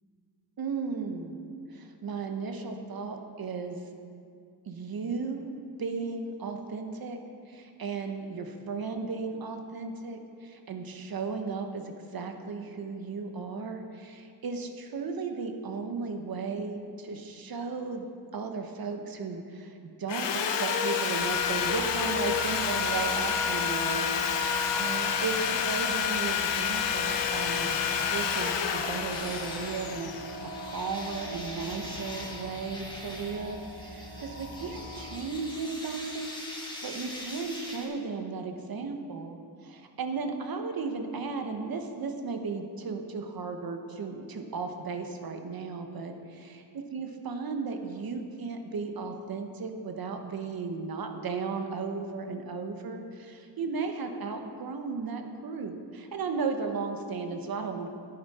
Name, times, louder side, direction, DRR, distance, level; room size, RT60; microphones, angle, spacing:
voice 1, 0.6-1.4 1.7-3.8 4.7-5.5 5.8-7.2 7.5-11.8 12.1-24.3 24.7-27.8 28.1-46.6 46.9-57.9, right 4 dB, 55° right, 5 dB, 1.1 m, -35 dB
Sawing, 20.1-31.1, left 7 dB, 90° left, 0.9 m, -29 dB
sound 1, 21.1-35.2, equal, 80° right, 1.7 m, -43 dB
sound 2, 29.1-37.9, left 1 dB, 10° left, 1.7 m, -43 dB
10.5 x 9.4 x 4.2 m, 2.4 s
wide cardioid pair, 115°, 42 cm